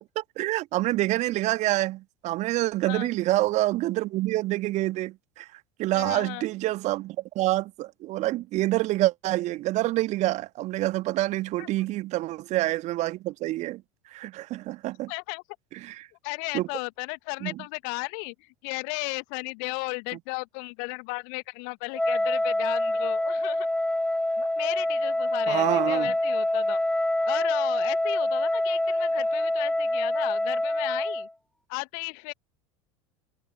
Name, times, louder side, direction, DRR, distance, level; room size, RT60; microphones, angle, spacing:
voice 1, 0.0-5.5 5.8-13.8 14.1-15.1 15.8-16.1 16.5-16.7 17.4-17.5 25.5-26.1, right 17 dB, 40° right, 1.7 m, -27 dB
voice 2, 5.9-6.4 11.6-11.7 15.1-15.4 16.2-23.7 24.4-26.8 27.3-31.3 31.7-32.3, left 40 dB or more, 50° left, 1.5 m, -35 dB
Wind instrument woodwind instrument, 21.9-31.3, left 1 dB, 5° left, 2.8 m, -26 dB
figure-of-eight pair, 75°, 17 cm